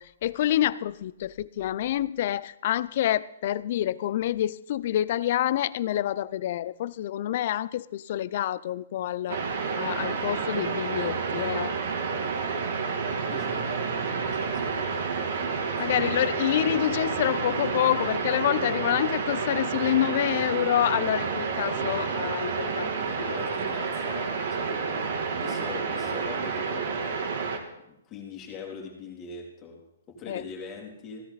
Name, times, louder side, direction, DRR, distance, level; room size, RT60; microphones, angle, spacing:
voice 1, 0.0-11.7 15.8-23.3 30.3-30.4, left 12 dB, 45° left, 18 dB, 0.5 m, -27 dB
sound 1, 9.3-27.6, right 5 dB, 60° right, 2.5 m, -29 dB
voice 2, 13.3-13.7 14.0-16.2 23.0-27.2 27.8-31.3, left 5 dB, 20° left, 0 dB, 3.0 m, -43 dB
16.0 x 13.5 x 4.1 m, 0.83 s
hypercardioid pair, 155°, 0 cm